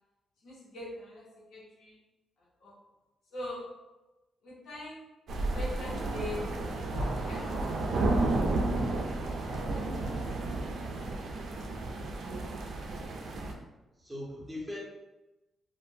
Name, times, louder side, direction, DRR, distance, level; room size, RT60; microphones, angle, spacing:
voice 1, 0.4-2.0 2.6-2.8 3.3-3.7 4.4-5.0 5.5-6.5 7.2-9.0 9.5-10.1 10.9-11.0, left 1 dB, 90° left, -4 dB, 0.8 m, -43 dB
sound 1, 5.3-13.5, right 2 dB, 65° right, 0.4 m, -32 dB
voice 2, 14.0-14.8, left 1 dB, 5° right, -6 dB, 0.8 m, -40 dB
2.3 x 2.1 x 3.1 m, 1.0 s
wide cardioid pair, 150°, 0 cm